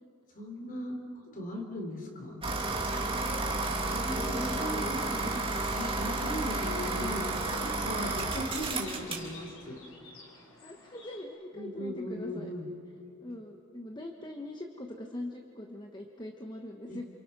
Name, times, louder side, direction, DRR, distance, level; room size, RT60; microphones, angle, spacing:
voice 1, 0.3-2.4 3.9-5.0 5.7-9.8 11.5-12.7 16.9-17.0, equal, 40° left, 2 dB, 4.4 m, -38 dB
sound 1, 2.4-9.3, right 2 dB, 25° right, 2.6 m, -32 dB
voice 2, 3.1-5.4 7.7-8.2 10.6-12.5 13.2-17.0, left 1 dB, 20° left, 3 dB, 1.3 m, -42 dB
sound 2, 5.6-11.2, left 3 dB, 65° left, 4.6 m, -52 dB
29.0 x 28.0 x 6.2 m, 2.8 s
head